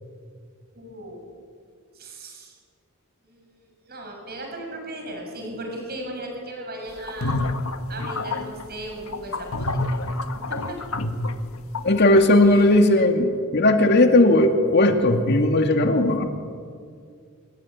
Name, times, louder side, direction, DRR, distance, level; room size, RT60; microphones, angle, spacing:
voice 1, 0.7-1.2 1.9-2.5 3.2-7.4 7.9-9.7 10.1-10.2 10.5-10.8 12.4-12.7, right 1 dB, 50° right, 2 dB, 6.9 m, -37 dB
sound 1, 6.9-12.2, left 2 dB, 80° left, 1.7 m, -28 dB
voice 2, 11.8-16.3, left 1 dB, 55° left, 5 dB, 2.5 m, -17 dB
27.0 x 22.0 x 9.6 m, 2.1 s
head